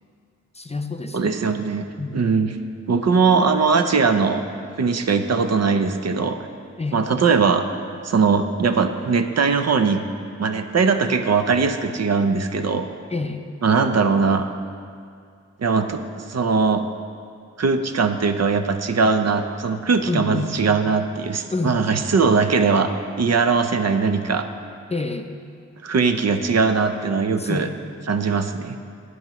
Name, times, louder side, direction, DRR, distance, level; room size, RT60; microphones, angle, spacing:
voice 1, 0.5-1.6 2.0-2.2 6.8-7.1 13.1-13.4 20.1-20.6 21.5-21.8 24.9-25.3 27.4-27.7, left 3 dB, 20° left, 6 dB, 0.5 m, -28 dB
voice 2, 1.1-1.9 2.1-2.5 2.9-4.4 4.8-6.4 6.9-7.7 8.0-10.0 10.4-12.9 13.6-14.5 15.6-16.8 17.6-22.9 23.2-24.5 25.8-27.7 28.1-28.8, right 5 dB, 55° right, 8 dB, 0.6 m, -20 dB
13.0 x 9.4 x 3.0 m, 2.3 s
wide cardioid pair, 95°, 30 cm